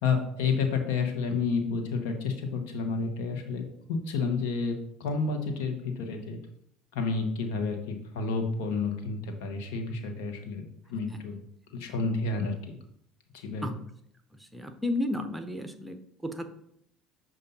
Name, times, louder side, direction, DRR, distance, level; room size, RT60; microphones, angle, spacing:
voice 1, 0.0-4.7 5.0-6.4 6.9-11.4 11.7-12.8 13.3-13.7, left 4 dB, 75° left, 4 dB, 1.1 m, -30 dB
voice 2, 14.5-16.0 16.2-16.5, left 1 dB, 10° right, 8 dB, 0.8 m, -32 dB
6.7 x 2.6 x 5.4 m, 0.71 s
hypercardioid pair, 70°, 0 cm